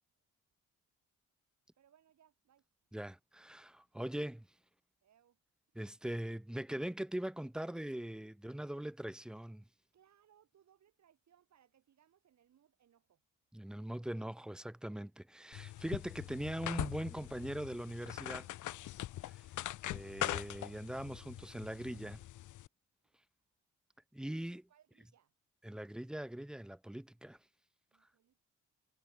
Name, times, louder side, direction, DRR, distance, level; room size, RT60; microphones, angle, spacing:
voice 1, 1.7-2.9 5.0-5.4 9.9-13.2 24.7-25.3 27.9-28.4, right 10 dB, 65° right, 7.5 m, -69 dB
voice 2, 2.9-4.5 5.8-9.6 13.5-18.5 19.3-19.4 19.8-22.2 24.1-24.7 25.6-27.4, right 1 dB, 5° right, 0.4 m, -41 dB
sound 1, 15.5-22.7, left 14 dB, 75° left, 1.2 m, -42 dB
cardioid pair, 90°, 30 cm